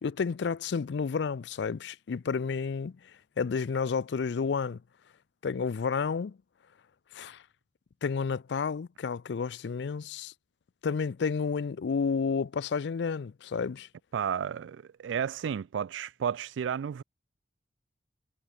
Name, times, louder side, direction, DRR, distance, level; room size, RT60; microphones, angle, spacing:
voice 1, 0.0-2.9 3.4-4.8 5.4-6.4 7.1-7.4 8.0-10.3 10.8-13.9, left 5 dB, 70° left, 0.4 m, -31 dB
voice 2, 14.1-17.0, right 8 dB, 85° right, 0.3 m, -32 dB
head